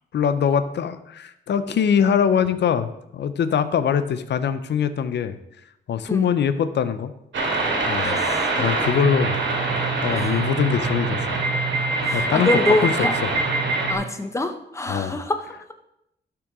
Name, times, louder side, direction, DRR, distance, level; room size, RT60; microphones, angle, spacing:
voice 1, 0.1-5.4 5.9-7.1 7.9-8.2 8.6-9.4 10.0-11.5 12.1-12.9 13.2-13.3 14.9-15.2, left 7 dB, 70° left, 12 dB, 0.6 m, -23 dB
sound 1, 7.3-13.9, right 3 dB, 90° right, 2.3 m, -24 dB
voice 2, 8.0-8.5 10.1-10.4 12.0-13.1 13.9-15.4, left 2 dB, 15° left, 7 dB, 0.8 m, -25 dB
12.0 x 5.9 x 3.6 m, 0.81 s
wide cardioid pair, 140°, 19 cm